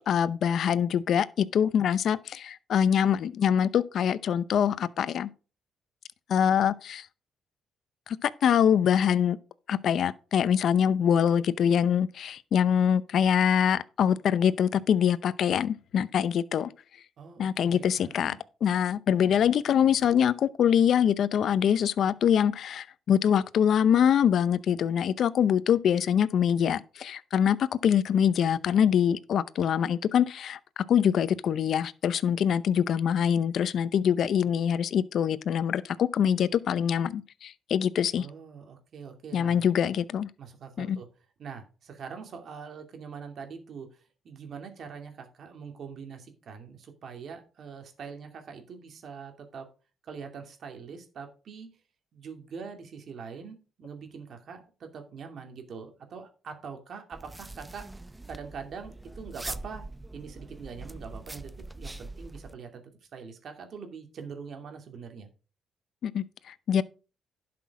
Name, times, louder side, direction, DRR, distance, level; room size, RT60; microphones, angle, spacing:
voice 1, 0.1-5.3 6.3-7.1 8.1-9.4 9.7-16.7 17.4-18.4 18.6-38.3 39.3-40.3 40.8-41.0 66.0-66.8, left 8 dB, 65° left, 0.6 m, -24 dB
voice 2, 17.2-18.4 38.1-39.7 40.4-41.1 41.4-49.7 50.0-51.7 52.1-57.9 58.3-59.9 60.1-65.3, right 6 dB, 60° right, 2.6 m, -43 dB
sound 1, 57.1-62.5, right 2 dB, 10° right, 0.6 m, -42 dB
11.5 x 6.0 x 4.8 m
cardioid pair, 90°, 0 cm